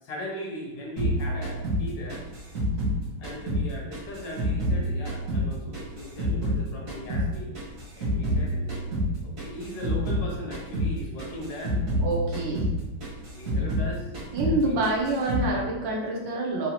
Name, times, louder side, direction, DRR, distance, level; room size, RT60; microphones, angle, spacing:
voice 1, 0.0-2.2 3.2-7.5 7.9-8.9 9.2-11.8 13.3-14.1 14.4-14.8, left 1 dB, 75° left, 0 dB, 1.3 m, -38 dB
sound 1, 1.0-3.7 3.9-6.6 6.9-10.3 10.5-10.9 11.2-13.9 14.1-14.6 14.8-15.5, equal, 55° right, 1.6 m, -28 dB
voice 2, 12.0-12.7 14.3-16.7, right 2 dB, 70° right, -2 dB, 1.2 m, -27 dB
3.7 x 2.7 x 2.8 m, 1.0 s
omnidirectional pair, 2.2 m